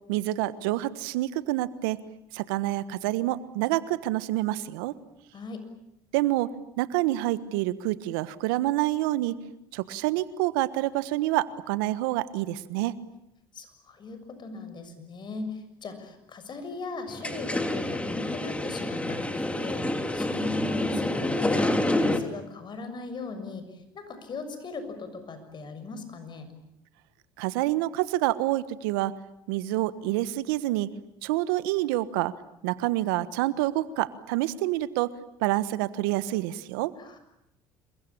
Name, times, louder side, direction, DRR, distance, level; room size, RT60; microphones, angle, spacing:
voice 1, 0.1-2.0 2.3-5.0 6.1-9.4 9.7-13.0 27.4-29.1 29.5-30.9 31.2-32.3 32.6-35.1 35.4-36.9, right 16 dB, 80° right, 15 dB, 1.3 m, -27 dB
voice 2, 5.3-5.6 13.5-19.9 20.1-26.5 37.0-37.2, left 3 dB, 40° left, 10 dB, 6.7 m, -38 dB
sound 1, 17.1-22.2, left 1 dB, 10° left, 3.3 m, -28 dB
28.0 x 23.0 x 8.8 m, 0.82 s
hypercardioid pair, 75°, 11 cm